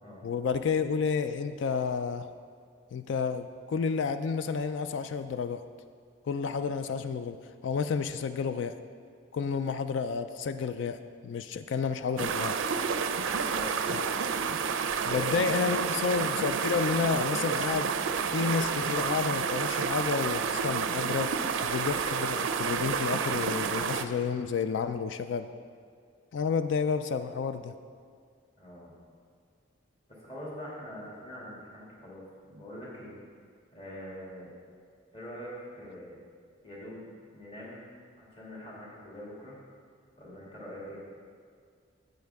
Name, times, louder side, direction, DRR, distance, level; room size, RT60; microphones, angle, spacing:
voice 1, 0.2-2.3 2.9-5.6 6.3-7.4 7.6-8.7 9.3-12.6 13.9-14.1 15.0-17.9 18.3-21.3 21.6-25.5 26.3-27.7, left 5 dB, 65° left, 10 dB, 0.3 m, -30 dB
sound 1, 12.2-24.0, right 6 dB, 75° right, 0.4 m, -30 dB
voice 2, 13.2-14.4 15.1-16.4 28.6-28.9 30.1-33.1 33.7-34.5 35.1-36.2 36.6-37.8 38.2-39.6 40.2-41.0, equal, 30° left, -6 dB, 2.2 m, -44 dB
10.5 x 7.3 x 3.5 m, 2.1 s
head